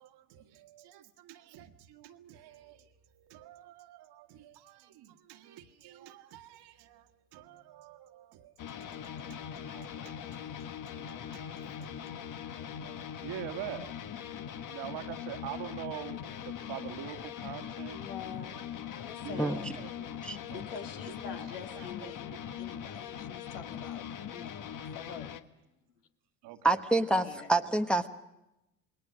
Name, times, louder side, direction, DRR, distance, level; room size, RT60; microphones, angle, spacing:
voice 1, 0.0-10.6 10.9-13.9 14.7-18.0 18.5-19.0 19.2-20.1 20.5-20.9 21.3-22.1 26.4-26.8 27.1-27.2 27.6-27.7, right 12 dB, 60° right, 7 dB, 1.9 m, -46 dB
sound 1, 8.6-25.4, left 9 dB, 45° left, 1.4 m, -41 dB
voice 2, 17.9-18.6 18.9-19.7 20.5-22.3 22.6-24.6 24.9-25.3 27.0-27.5, left 7 dB, 85° left, 4 dB, 2.2 m, -46 dB
voice 3, 26.6-28.1, right 2 dB, ahead, 6 dB, 1.1 m, -27 dB
28.0 x 20.5 x 6.4 m, 0.93 s
hypercardioid pair, 70°, 45 cm